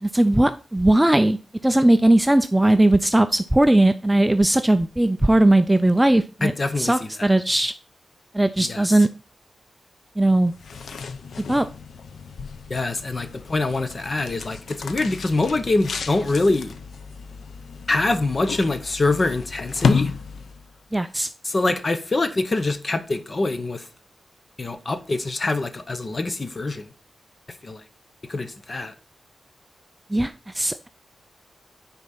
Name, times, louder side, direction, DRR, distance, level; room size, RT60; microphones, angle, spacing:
voice 1, 0.0-1.4 1.6-6.5 6.8-7.7 8.3-9.1 10.2-10.5 11.5-11.7 20.9-21.3 30.1-30.9, right 1 dB, 10° right, 0.4 m, -18 dB
voice 2, 6.4-6.9 8.6-8.8 12.7-16.7 17.9-20.1 21.4-23.8 24.6-26.8 27.6-27.8 28.3-28.9, left 2 dB, 30° left, 0.9 m, -24 dB
sound 1, 10.4-20.8, left 5 dB, 75° left, 0.8 m, -31 dB
9.8 x 4.1 x 5.9 m
wide cardioid pair, 175°, 0 cm